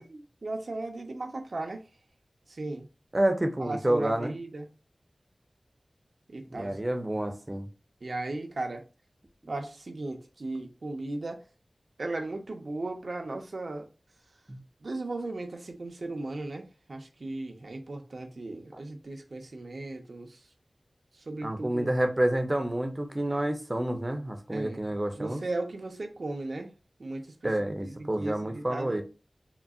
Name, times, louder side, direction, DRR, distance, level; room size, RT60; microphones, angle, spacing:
voice 1, 0.0-1.8 2.5-2.9 3.6-4.7 6.3-6.8 8.0-8.8 9.5-11.4 12.0-13.9 14.8-20.4 21.2-21.9 24.5-24.9 25.2-26.7 27.0-29.0, right 2 dB, 75° right, 0.6 m, -36 dB
voice 2, 3.1-4.3 6.5-7.7 14.5-14.6 21.4-25.4 27.4-29.0, right 1 dB, 30° right, 0.5 m, -29 dB
3.8 x 2.0 x 2.3 m
wide cardioid pair, 60°, 0 cm